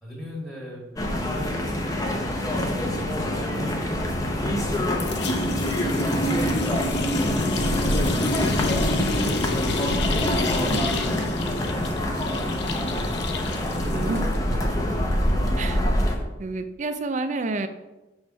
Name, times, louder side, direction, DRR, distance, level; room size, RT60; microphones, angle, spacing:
voice 1, 0.0-2.3 3.3-5.1 5.5-7.3 10.9-13.1 13.6-14.7, equal, ahead, -3 dB, 1.7 m, -39 dB
sound 1, 1.0-16.2, left 1 dB, 20° left, 0.7 m, -25 dB
sound 2, 4.1-4.8 5.0-14.4, left 2 dB, 60° left, 0.7 m, -30 dB
voice 2, 13.9-14.2 15.6-15.8 16.4-17.7, right 3 dB, 40° right, 9 dB, 0.4 m, -29 dB
6.3 x 3.4 x 6.0 m, 1.0 s
head